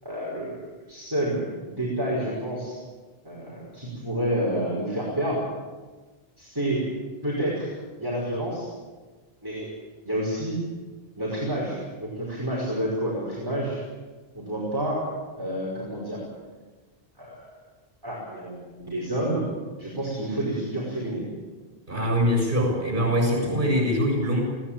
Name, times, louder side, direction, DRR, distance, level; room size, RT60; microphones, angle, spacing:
voice 1, 0.0-0.6 0.9-2.8 3.2-5.4 6.4-6.9 7.2-7.7 8.0-8.7 9.4-9.7 10.0-10.6 11.2-13.8 14.3-15.0 15.4-16.2 17.2-17.4 18.0-19.4 19.8-21.3 23.0-23.7, right 1 dB, 20° right, -5 dB, 5.2 m, -29 dB
voice 2, 21.9-24.4, equal, 55° right, 0 dB, 7.6 m, -23 dB
20.0 x 18.0 x 8.9 m, 1.3 s
omnidirectional pair, 1.1 m